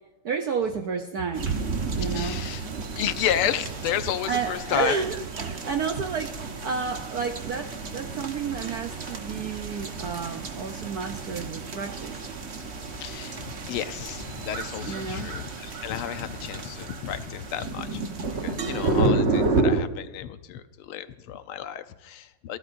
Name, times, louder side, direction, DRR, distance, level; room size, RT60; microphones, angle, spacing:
voice 1, 0.2-1.6 1.9-2.4 4.3-12.2 14.9-15.3, right 6 dB, 65° right, 6 dB, 0.9 m, -31 dB
sound 1, 1.3-19.8, right 3 dB, 40° right, 1.1 m, -31 dB
voice 2, 2.0-2.6 3.0-5.0 12.9-22.6, left 10 dB, 80° left, 11 dB, 1.6 m, -32 dB
27.5 x 12.5 x 2.6 m, 1.1 s
omnidirectional pair, 2.4 m